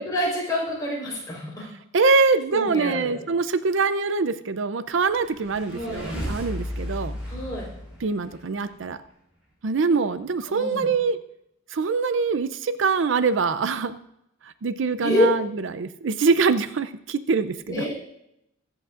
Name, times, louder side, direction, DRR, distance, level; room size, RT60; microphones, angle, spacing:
voice 1, 0.0-1.7 2.5-3.2 5.7-6.1 7.3-7.7 10.5-10.9 15.0-15.3 17.7-17.9, equal, 20° left, -5 dB, 4.3 m, -27 dB
voice 2, 1.9-7.2 8.0-9.0 9.6-11.2 11.7-14.0 14.6-15.5 15.7-17.8, right 4 dB, 65° right, 12 dB, 0.5 m, -23 dB
sound 1, 5.1-8.7, equal, 5° right, 4.7 m, -34 dB
22.5 x 8.1 x 2.5 m, 0.80 s
head